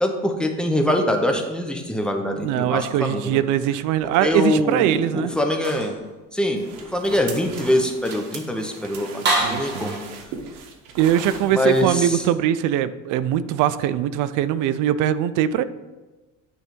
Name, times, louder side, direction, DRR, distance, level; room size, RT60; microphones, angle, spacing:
voice 1, 0.0-3.4 4.2-5.9 6.3-6.6 6.9-9.2 9.5-10.0 11.5-12.2, left 1 dB, 5° left, 3 dB, 0.7 m, -23 dB
voice 2, 2.4-5.3 9.4-9.9 11.0-15.6, right 11 dB, 70° right, 15 dB, 0.4 m, -21 dB
sound 1, 3.5-4.4 5.6-6.1 6.6-6.7 7.3-7.4 7.9-8.4 9.2-10.0, right 2 dB, 30° right, 1.5 m, -28 dB
sound 2, 6.6-11.9, right 5 dB, 85° right, 1.2 m, -39 dB
9.1 x 3.3 x 5.2 m, 1.2 s
cardioid pair, 145°, 32 cm